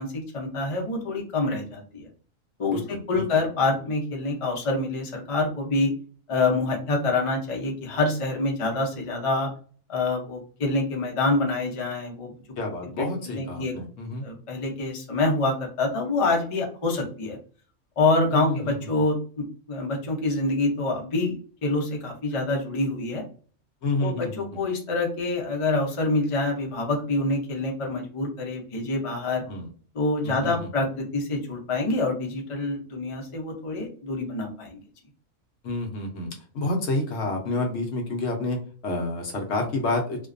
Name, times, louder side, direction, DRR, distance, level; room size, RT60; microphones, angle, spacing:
voice 1, 0.0-2.1 2.6-5.9 6.3-9.5 9.9-12.3 13.0-13.8 14.2-17.4 18.0-23.2 24.0-29.4 29.9-34.8, left 2 dB, 40° left, 0 dB, 0.4 m, -26 dB
voice 2, 2.7-3.2 12.6-14.2 18.3-18.7 23.8-24.6 29.5-29.7 30.2-30.7 35.6-40.3, left 2 dB, 65° left, 2 dB, 0.8 m, -29 dB
2.5 x 2.2 x 2.4 m, 0.42 s
omnidirectional pair, 1.4 m